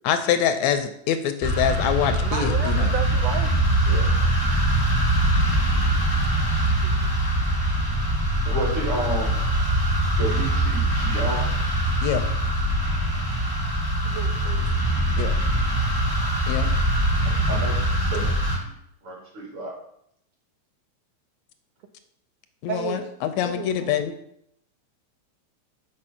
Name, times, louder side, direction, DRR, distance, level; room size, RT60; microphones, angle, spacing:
voice 1, 0.0-2.9 12.0-12.3 15.2-15.3 16.5-16.7 22.6-24.1, left 9 dB, 80° left, 9 dB, 1.8 m, -25 dB
sound 1, 1.4-18.6, right 1 dB, 15° right, 1.0 m, -22 dB
voice 2, 2.2-3.7 6.8-7.1 14.0-14.7 22.7-23.0 23.4-24.0, right 8 dB, 80° right, 5 dB, 1.5 m, -33 dB
voice 3, 8.5-9.4 10.2-11.4 17.2-17.8 18.1-18.7 19.0-19.7, right 1 dB, 50° right, -3 dB, 2.9 m, -31 dB
7.7 x 4.7 x 5.7 m, 0.73 s
omnidirectional pair, 3.4 m